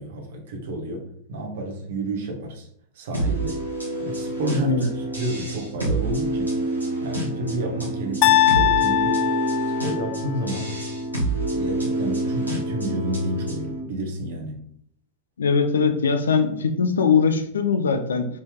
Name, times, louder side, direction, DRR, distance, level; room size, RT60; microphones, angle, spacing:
voice 1, 0.0-2.7 2.9-3.6 4.0-6.6 7.0-9.2 9.6-10.7 11.5-14.7, right 1 dB, 60° right, 2 dB, 1.7 m, -30 dB
sound 1, 3.1-13.8, right 2 dB, 90° right, 2.8 m, -27 dB
sound 2, 8.2-10.4, left 14 dB, 40° left, 0.4 m, -21 dB
voice 2, 15.4-18.3, left 5 dB, 70° left, 8 dB, 0.8 m, -21 dB
6.7 x 4.8 x 3.6 m, 0.65 s
figure-of-eight pair, 90°, 0 cm